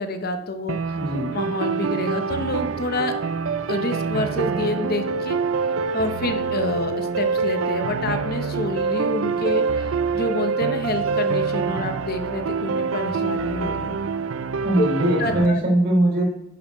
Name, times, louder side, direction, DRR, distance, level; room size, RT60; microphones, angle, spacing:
voice 1, 0.0-1.0 1.3-3.1 3.7-5.4 5.9-14.0 14.8-15.6, left 2 dB, 50° left, 7 dB, 0.9 m, -28 dB
sound 1, 0.7-15.5, right 5 dB, 85° right, 0.5 m, -25 dB
voice 2, 0.9-1.4 14.6-16.2, right 1 dB, 55° right, -2 dB, 3.4 m, -21 dB
11.0 x 6.7 x 3.1 m, 0.83 s
head